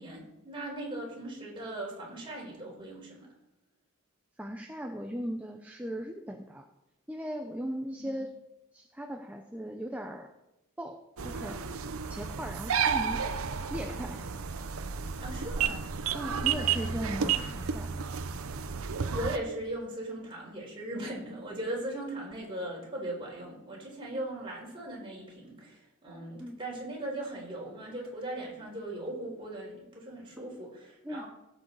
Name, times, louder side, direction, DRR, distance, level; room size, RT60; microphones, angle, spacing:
voice 1, 0.0-3.3 8.0-8.2 15.2-15.9 17.2-17.5 19.1-31.3, right 1 dB, 25° right, -3 dB, 4.3 m, -39 dB
voice 2, 4.4-6.7 7.1-8.4 8.7-10.3 10.8-11.6 12.1-13.3 13.7-14.3 16.1-17.9 26.4-26.6 30.4-30.5 31.0-31.2, equal, 5° right, 3 dB, 0.6 m, -38 dB
sound 1, 11.2-19.4, right 6 dB, 85° right, 0.7 m, -32 dB
16.5 x 7.8 x 4.0 m, 0.92 s
head